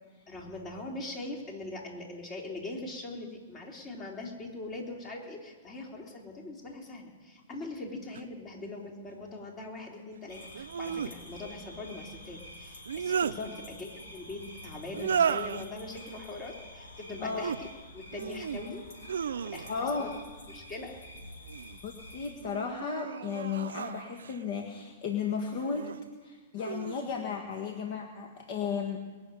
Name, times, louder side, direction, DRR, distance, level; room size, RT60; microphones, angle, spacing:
voice 1, 0.3-17.7 17.9-18.8 19.4-20.1 20.5-21.0, left 2 dB, 30° left, 0 dB, 3.6 m, -41 dB
sound 1, 8.1-8.2 10.5-11.1 12.7-13.4 14.9-15.7 17.1-17.6 18.1-18.6 19.0-19.9 21.2-21.8 22.4-24.4 25.5-26.0 26.6-27.1, right 7 dB, 80° right, 0.5 m, -34 dB
sound 2, 10.3-22.3, left 1 dB, 70° left, 4.9 m, -49 dB
voice 2, 19.7-20.1 21.8-25.9 26.2-29.0, left 6 dB, 50° left, 3 dB, 1.7 m, -34 dB
21.5 x 7.3 x 9.2 m, 1.4 s
hypercardioid pair, 125°, 0 cm